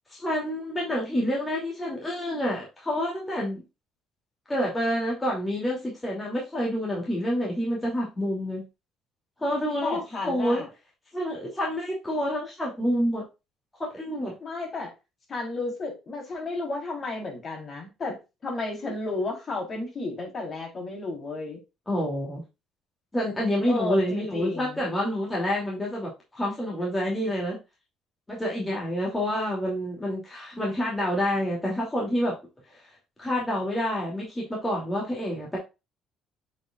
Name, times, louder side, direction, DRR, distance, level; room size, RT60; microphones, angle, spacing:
voice 1, 0.1-3.6 4.5-8.6 9.4-10.6 11.1-13.2 13.9-14.3 21.9-22.4 23.1-27.6 28.3-32.3 32.7-32.8 33.2-35.6, equal, 15° left, -3 dB, 2.8 m, -28 dB
voice 2, 9.8-10.7 14.4-14.9 15.3-18.2 18.4-21.6 23.7-24.8, left 3 dB, 35° left, 0 dB, 3.9 m, -32 dB
7.6 x 5.9 x 2.5 m, 0.26 s
cardioid pair, 125°, 0 cm